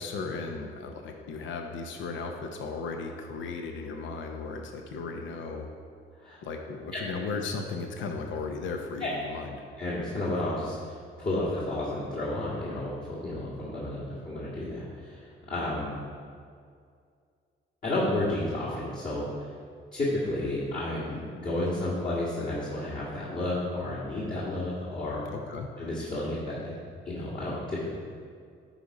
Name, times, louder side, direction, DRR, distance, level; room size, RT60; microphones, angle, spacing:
voice 1, 0.0-5.7 6.4-9.6 25.3-25.7, left 4 dB, 75° left, 4 dB, 0.8 m, -36 dB
voice 2, 9.8-12.9 13.2-16.0 17.8-19.3 19.9-25.2 25.8-26.7 27.1-28.0, left 1 dB, 45° left, -7 dB, 1.9 m, -31 dB
10.0 x 4.2 x 4.8 m, 2.2 s
cardioid pair, 90°, 20 cm